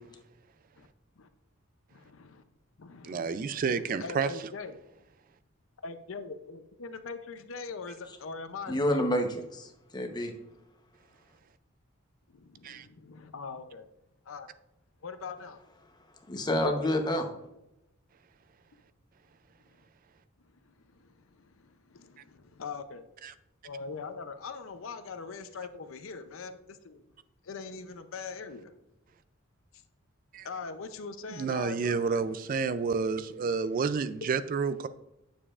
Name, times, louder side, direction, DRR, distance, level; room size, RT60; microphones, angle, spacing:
voice 1, 1.9-2.4 2.8-4.8 5.8-9.0 12.3-13.9 14.3-14.5 15.0-15.6 20.6-23.0 23.6-27.0 27.4-28.7 30.4-32.2, left 4 dB, 65° left, 0.6 m, -42 dB
voice 2, 3.0-4.3 12.6-12.9 23.2-23.3 30.3-30.5 31.3-34.9, right 5 dB, 40° right, 0.3 m, -30 dB
voice 3, 8.7-10.3 16.3-17.3, left 1 dB, 20° left, 0.9 m, -28 dB
8.7 x 7.1 x 2.4 m
head